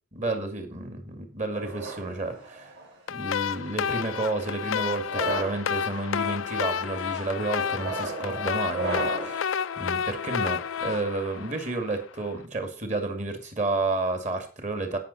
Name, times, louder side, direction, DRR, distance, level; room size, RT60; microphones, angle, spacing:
voice 1, 0.1-2.7 3.1-15.0, right 2 dB, 35° right, 6 dB, 2.3 m, -31 dB
sound 1, 1.5-2.9 3.7-4.1 4.9-5.6 6.3-6.6 7.6-9.4, right 3 dB, 55° right, 7.1 m, -34 dB
sound 2, 3.1-12.2, left 7 dB, 75° left, 0.5 m, -30 dB
17.0 x 6.2 x 4.3 m, 0.37 s
head